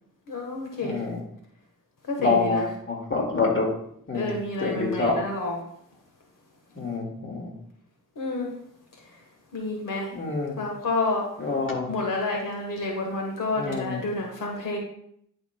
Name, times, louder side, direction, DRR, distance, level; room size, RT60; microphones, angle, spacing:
voice 1, 0.3-0.9 2.1-2.6 4.1-5.5 8.2-8.5 9.5-10.1 10.6-11.3 11.9-14.8, left 2 dB, 75° left, 1 dB, 1.4 m, -29 dB
voice 2, 0.8-1.2 2.2-3.7 4.1-4.3 4.6-5.2 6.8-7.5 10.1-10.6 11.4-11.9 13.5-14.0, left 3 dB, 40° left, 1 dB, 2.1 m, -26 dB
11.0 x 5.5 x 2.2 m, 0.69 s
cardioid pair, 65°, 33 cm